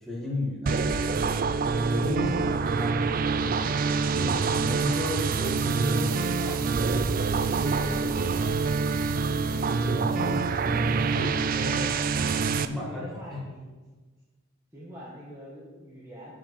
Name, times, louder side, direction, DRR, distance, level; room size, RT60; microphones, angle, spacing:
voice 1, 0.0-8.8 9.4-11.9 12.6-13.4, left 1 dB, ahead, -5 dB, 1.8 m, -36 dB
sound 1, 0.7-12.7, right 4 dB, 40° right, 0.3 m, -26 dB
voice 2, 2.3-2.7 12.3-14.0 14.7-16.3, equal, 15° right, -6 dB, 1.3 m, -45 dB
8.5 x 5.7 x 5.9 m, 1.3 s
head